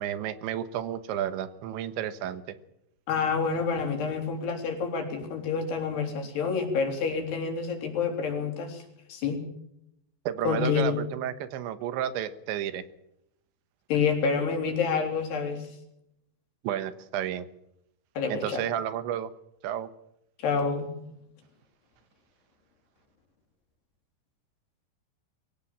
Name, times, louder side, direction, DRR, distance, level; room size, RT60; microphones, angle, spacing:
voice 1, 0.0-2.6 10.3-12.8 16.6-17.5 18.3-19.3 19.6-19.9, right 10 dB, 90° right, 12 dB, 3.6 m, -31 dB
voice 2, 3.1-8.8 9.1-9.4 10.5-11.0 13.9-15.6 18.2-18.6 20.4-20.9, left 5 dB, 65° left, 3 dB, 5.6 m, -28 dB
22.5 x 17.0 x 7.4 m, 0.79 s
omnidirectional pair, 5.1 m